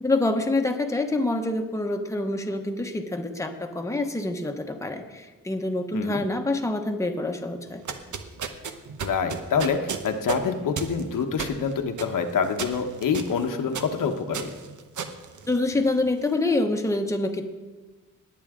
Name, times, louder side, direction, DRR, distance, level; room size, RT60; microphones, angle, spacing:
voice 1, 0.0-7.8 15.5-17.4, left 2 dB, 10° left, 4 dB, 1.0 m, -26 dB
voice 2, 5.9-6.2 9.0-14.5, left 6 dB, 80° left, 5 dB, 1.1 m, -26 dB
sound 1, 7.7-16.1, right 6 dB, 65° right, 1.0 m, -35 dB
19.5 x 8.7 x 3.7 m, 1.3 s
wide cardioid pair, 120°, 32 cm